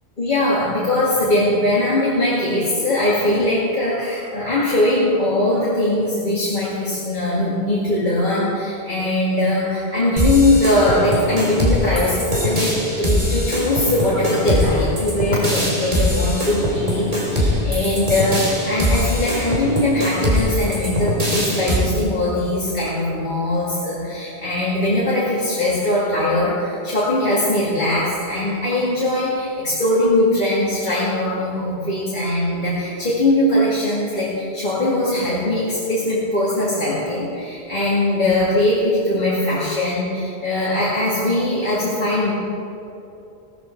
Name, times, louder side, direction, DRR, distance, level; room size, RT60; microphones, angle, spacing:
voice 1, 0.2-42.3, left 1 dB, 45° left, -7 dB, 2.3 m, -20 dB
sound 1, 10.2-21.8, equal, 35° right, 2.9 m, -22 dB
16.0 x 13.5 x 4.5 m, 2.8 s
omnidirectional pair, 1.1 m